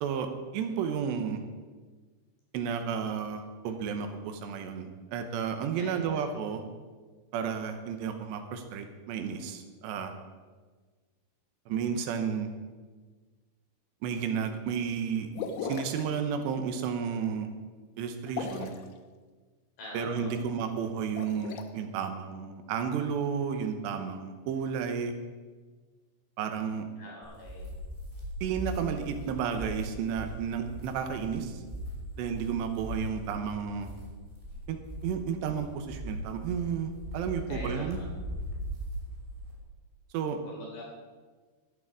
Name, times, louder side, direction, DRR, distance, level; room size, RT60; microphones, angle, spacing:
voice 1, 0.0-1.4 2.5-6.6 7.3-10.1 11.7-12.5 14.0-15.3 15.6-17.5 18.0-18.7 19.9-25.1 26.4-26.8 28.4-31.6 32.2-33.9 34.7-34.8 35.0-38.0 40.1-40.4, right 7 dB, 85° right, 7 dB, 3.3 m, -32 dB
voice 2, 5.8-6.2 19.8-20.4 27.0-27.7 37.5-38.1 40.4-40.8, left 1 dB, 60° left, -3 dB, 5.4 m, -44 dB
sound 1, 15.3-16.1 18.2-18.9 21.0-21.6, left 6 dB, 75° left, 2.8 m, -36 dB
sound 2, 27.2-39.6, equal, 10° right, 2.5 m, -39 dB
13.5 x 11.5 x 4.9 m, 1.4 s
omnidirectional pair, 4.8 m